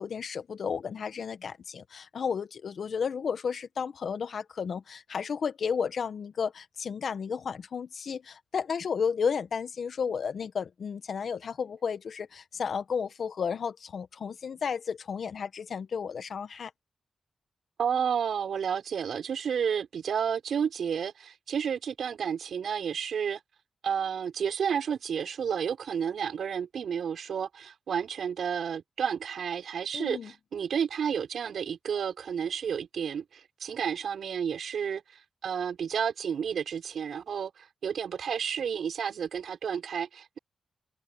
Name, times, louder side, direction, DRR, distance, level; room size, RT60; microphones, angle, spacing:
voice 1, 0.0-16.7 29.9-30.3, left 6 dB, 70° left, 1.5 m, -33 dB
voice 2, 17.8-23.4 23.8-35.0 35.4-40.4, right 7 dB, 80° right, 6.4 m, -31 dB
cardioid pair, 60°, 0 cm